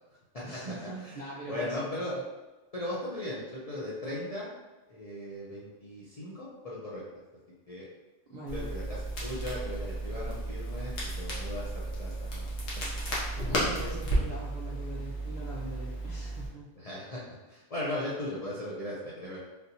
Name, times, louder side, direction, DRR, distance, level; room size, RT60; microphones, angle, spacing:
voice 1, 0.4-2.2 8.3-8.7 12.8-13.0 13.5-16.7, right 2 dB, 60° right, -5 dB, 0.4 m, -42 dB
voice 2, 1.5-2.2 2.7-4.5 4.9-7.0 7.7-7.9 8.5-12.5 16.8-19.4, left 1 dB, 50° left, -7 dB, 0.4 m, -37 dB
Crackle, 8.5-16.5, right 1 dB, 85° left, 1.3 m, -33 dB
3.5 x 2.6 x 2.8 m, 1.1 s
omnidirectional pair, 1.3 m